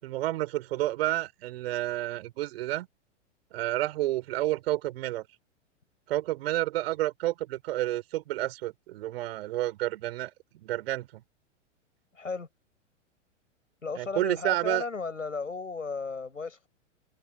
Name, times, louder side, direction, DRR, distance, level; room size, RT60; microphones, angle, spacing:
voice 1, 0.0-2.9 3.5-5.3 6.1-11.2 14.0-14.8, right 15 dB, 50° right, 6.3 m, -30 dB
voice 2, 12.1-12.5 13.8-16.7, left 4 dB, 85° left, 6.7 m, -35 dB
figure-of-eight pair, 100°, 38 cm